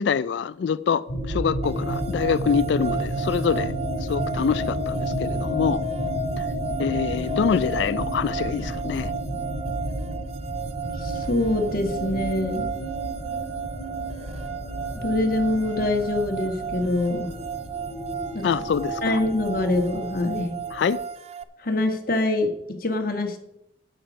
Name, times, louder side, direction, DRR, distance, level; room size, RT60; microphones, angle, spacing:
voice 1, 0.0-3.7 4.0-5.8 6.4-6.5 6.8-9.1 18.4-19.2 20.7-21.0, left 6 dB, 65° left, 17 dB, 0.3 m, -25 dB
sound 1, 1.1-20.9, equal, 60° right, 4.3 m, -31 dB
sound 2, 1.6-21.4, right 8 dB, 35° right, 0.4 m, -34 dB
voice 2, 11.0-12.7 15.0-17.3 18.3-18.6 19.0-20.6 21.6-22.5 22.8-23.4, left 2 dB, 50° left, 4 dB, 1.5 m, -24 dB
9.0 x 8.7 x 5.1 m, 0.78 s
head